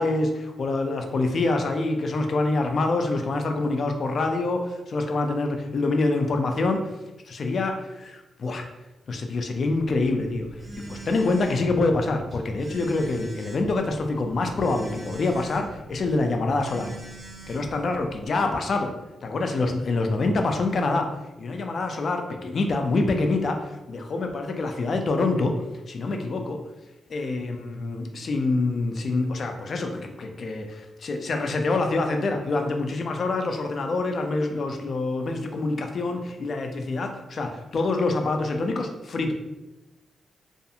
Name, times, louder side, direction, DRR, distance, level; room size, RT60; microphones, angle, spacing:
voice 1, 0.0-6.9 7.3-8.7 9.1-10.5 10.8-16.9 17.5-18.9 19.2-21.1 21.4-25.5 25.9-26.6 27.1-39.3, left 3 dB, 55° left, 4 dB, 0.3 m, -26 dB
Telephone, 9.8-18.3, right 2 dB, 35° right, 1.1 m, -44 dB
2.4 x 2.4 x 2.7 m, 1.0 s
cardioid pair, 70°, 0 cm